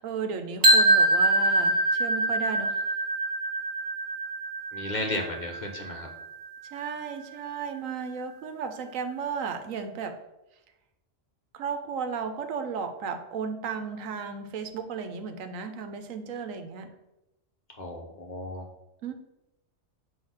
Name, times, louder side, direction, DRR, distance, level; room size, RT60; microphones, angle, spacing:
voice 1, 0.0-2.9 6.7-10.1 11.5-16.9 19.0-19.1, right 6 dB, 85° right, 7 dB, 1.1 m, -34 dB
sound 1, 0.6-6.6, right 2 dB, 40° right, 1.1 m, -24 dB
voice 2, 4.7-6.1 17.8-18.7, left 2 dB, 40° left, 1 dB, 1.0 m, -34 dB
8.3 x 2.8 x 5.6 m, 0.95 s
omnidirectional pair, 1.3 m